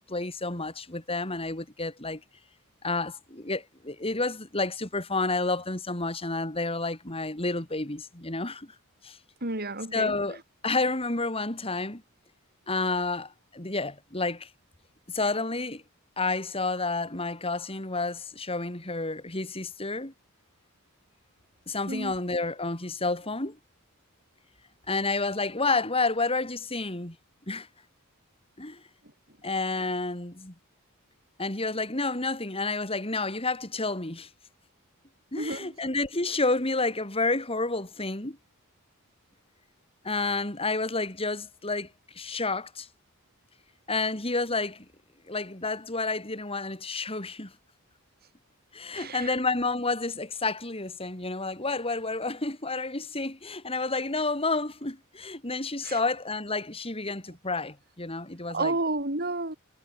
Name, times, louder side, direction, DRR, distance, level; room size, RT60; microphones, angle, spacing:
voice 1, 0.0-2.2 2.8-8.7 9.0-9.2 9.9-12.0 12.7-14.5 15.1-15.8 16.2-20.1 21.7-23.6 24.9-27.2 27.5-27.7 28.6-28.8 29.4-30.5 31.4-34.3 35.3-38.4 40.0-41.9 42.1-42.9 43.9-44.9 45.3-47.5 48.7-58.7, left 3 dB, 25° left, 3.9 m, -30 dB
voice 2, 9.4-10.1 21.9-22.1 35.4-35.7 48.9-49.3 55.8-56.0 58.5-59.6, right 2 dB, 45° right, 7.5 m, -31 dB
head